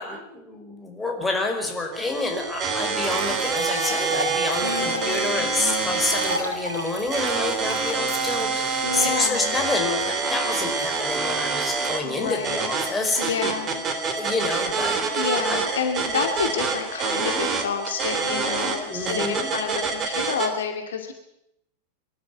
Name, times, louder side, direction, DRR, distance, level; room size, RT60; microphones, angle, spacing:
voice 1, 0.0-13.4 14.1-15.0 15.4-15.6 18.9-19.5, left 3 dB, 10° left, 1 dB, 5.2 m, -28 dB
sound 1, 1.9-20.5, right 4 dB, 30° right, 3.3 m, -27 dB
sound 2, 2.3-2.4 3.0-9.3, equal, 75° right, 3.7 m, -34 dB
voice 2, 4.6-6.1 8.8-9.6 12.0-12.7 13.2-13.8 15.2-21.1, left 6 dB, 65° left, 5 dB, 2.3 m, -29 dB
23.0 x 13.0 x 9.5 m, 0.81 s
figure-of-eight pair, 90°, 0 cm